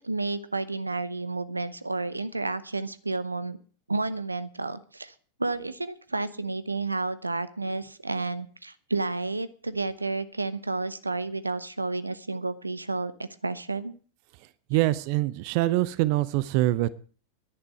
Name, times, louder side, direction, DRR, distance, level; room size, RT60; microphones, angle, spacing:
voice 1, 0.0-3.6 3.9-5.1 5.4-14.0, right 3 dB, 80° right, 0.7 m, -31 dB
voice 2, 14.7-16.9, right 17 dB, 45° right, 0.7 m, -24 dB
11.0 x 9.7 x 8.0 m
figure-of-eight pair, 90°, 0 cm